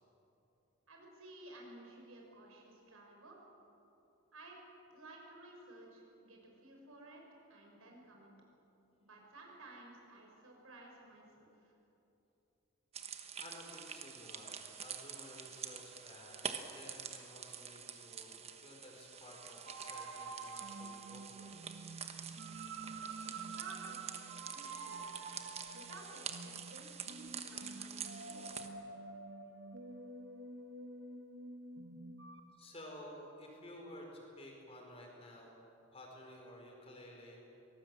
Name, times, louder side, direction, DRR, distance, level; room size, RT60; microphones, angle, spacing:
voice 1, 0.9-3.4 4.3-4.6 4.9-7.2 7.5-8.3 9.0-11.7 23.2-25.0 25.7-28.7, right 2 dB, 80° right, 0 dB, 5.6 m, -55 dB
sound 1, 12.9-28.7, right 7 dB, 30° right, 1.2 m, -47 dB
voice 2, 13.4-16.5 16.7-21.6 32.5-35.6 35.9-37.5, left 1 dB, 30° left, 0 dB, 4.5 m, -53 dB
sound 2, 19.6-32.4, right 3 dB, 60° right, 1.4 m, -48 dB
24.0 x 19.0 x 7.6 m, 2.9 s
head